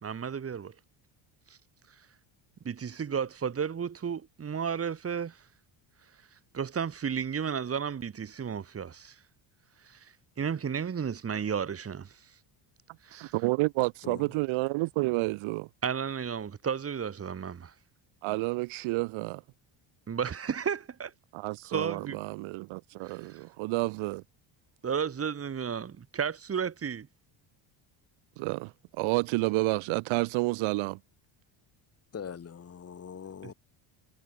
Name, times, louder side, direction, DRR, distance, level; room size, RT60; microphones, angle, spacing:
voice 1, 0.0-0.7 1.5-1.6 2.6-5.4 6.5-9.2 9.8-12.2 13.0-13.3 15.8-17.7 20.1-21.1 21.7-22.2 23.0-23.4 24.8-27.1, right 7 dB, 30° right, 2.2 m, -33 dB
voice 2, 13.1-15.7 18.2-19.4 21.3-24.2 28.4-31.0, right 23 dB, 75° right, 0.8 m, -30 dB
voice 3, 32.1-33.5, left 7 dB, 30° left, 3.5 m, -42 dB
cardioid pair, 140°, 48 cm